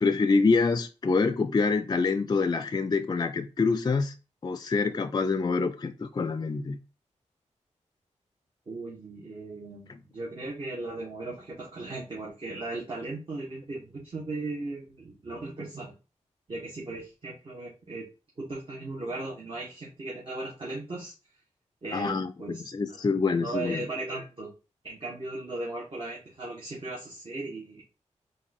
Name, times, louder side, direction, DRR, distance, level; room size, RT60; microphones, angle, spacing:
voice 1, 0.0-4.1 4.4-6.8 9.9-10.0 21.9-23.9, left 4 dB, 35° left, 0.4 m, -26 dB
voice 2, 8.7-15.9 16.5-18.1 18.4-21.1 21.8-23.0 23.3-24.5 24.8-27.8, right 2 dB, 45° right, 1.5 m, -37 dB
4.0 x 2.6 x 4.2 m
cardioid pair, 75°, 12 cm